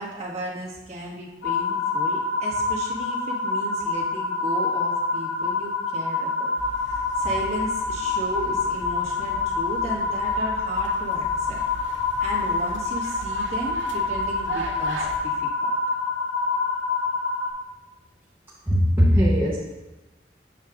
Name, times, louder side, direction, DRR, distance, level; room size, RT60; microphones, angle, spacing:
voice 1, 0.0-15.7, right 1 dB, 35° right, -5 dB, 1.4 m, -35 dB
sound 1, 1.4-17.5, left 4 dB, 55° left, 1.2 m, -26 dB
sound 2, 6.6-15.2, right 3 dB, 85° right, 0.7 m, -39 dB
voice 2, 18.7-19.6, equal, 10° right, -7 dB, 0.7 m, -19 dB
7.3 x 6.4 x 2.5 m, 1.1 s
head